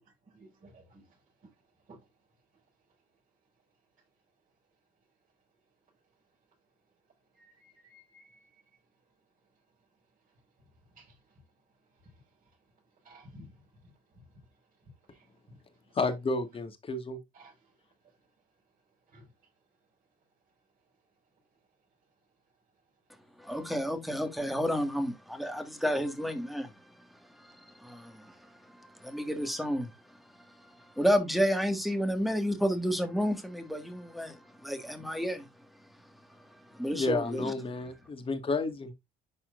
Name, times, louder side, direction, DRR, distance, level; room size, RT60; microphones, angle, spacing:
voice 1, 0.3-1.0 1.9-2.0 7.4-8.4 11.0-11.1 13.0-13.5 15.1-15.2 15.5-15.6 17.3-17.5 19.1-19.2, equal, 50° right, 5.5 m, -54 dB
voice 2, 15.9-17.2 36.9-38.9, left 3 dB, 35° left, 1.8 m, -31 dB
voice 3, 23.4-26.7 27.4-35.5 36.7-37.5, equal, ahead, 1.8 m, -31 dB
11.0 x 4.3 x 2.5 m
cardioid pair, 110°, 17 cm